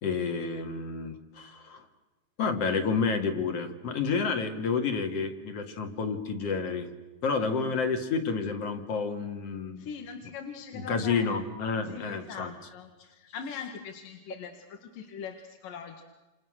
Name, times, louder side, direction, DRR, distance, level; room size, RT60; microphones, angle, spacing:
voice 1, 0.0-1.8 2.4-6.9 7.2-9.9 10.7-12.5, left 5 dB, 50° left, 6 dB, 2.9 m, -30 dB
voice 2, 7.4-7.8 9.8-11.4 11.8-16.0, left 6 dB, 70° left, 5 dB, 3.4 m, -42 dB
28.5 x 28.5 x 6.5 m, 1.2 s
omnidirectional pair, 4.1 m